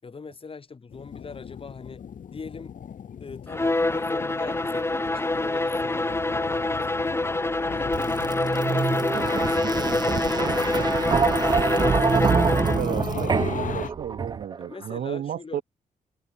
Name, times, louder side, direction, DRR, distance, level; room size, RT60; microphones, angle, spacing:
voice 1, 0.0-2.0 2.3-2.7 3.2-7.2 7.7-8.1 8.4-11.1 14.7-15.6, left 4 dB, 40° left, 5.0 m, -41 dB
sound 1, 0.9-13.9, left 8 dB, 65° left, 2.3 m, -38 dB
Bowed string instrument, 3.5-13.0, left 2 dB, 15° left, 3.3 m, -26 dB
sound 2, 7.9-14.7, right 5 dB, 30° right, 0.4 m, -26 dB
voice 2, 12.5-15.6, right 10 dB, 85° right, 2.7 m, -33 dB
cardioid pair, 100°, 14 cm